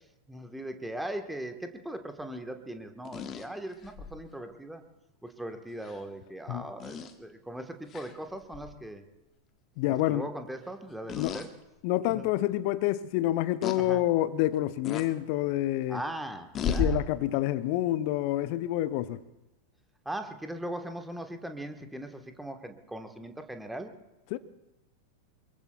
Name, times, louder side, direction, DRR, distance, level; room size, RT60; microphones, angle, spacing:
voice 1, 0.3-4.8 5.2-9.0 10.1-11.5 12.1-12.3 13.7-14.0 15.9-17.0 20.0-23.9, right 1 dB, 5° right, 1.3 m, -39 dB
sound 1, 3.0-4.2 5.8-6.0 6.8-7.1 7.9-8.1 8.5-8.7 11.1-11.5 12.1-12.2 13.6-13.8 14.8-15.1 16.5-16.9, left 5 dB, 30° left, 1.1 m, -33 dB
voice 2, 9.8-10.3 11.1-11.4 11.8-16.0 16.7-19.2 24.3-24.4, left 14 dB, 45° left, 0.7 m, -28 dB
25.0 x 22.5 x 2.3 m
figure-of-eight pair, 90°, 0 cm